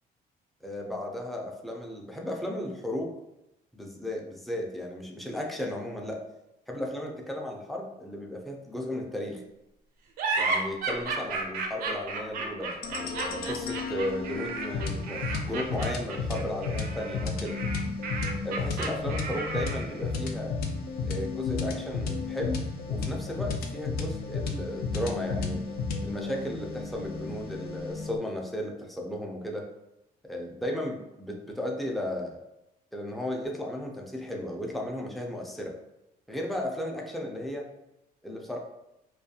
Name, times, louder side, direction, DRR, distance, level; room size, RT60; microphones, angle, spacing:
voice 1, 0.6-3.1 3.7-6.2 6.7-9.4 10.4-17.6 18.4-20.5 21.0-25.6 26.0-29.7 30.2-32.4 32.9-35.7 36.3-37.7 38.2-38.6, left 1 dB, ahead, 0 dB, 0.3 m, -35 dB
sound 1, 10.2-20.0, right 3 dB, 65° right, 0.4 m, -33 dB
sound 2, 12.8-28.2, left 4 dB, 75° left, 0.4 m, -33 dB
2.3 x 2.2 x 2.7 m, 0.88 s
cardioid pair, 140°, 16 cm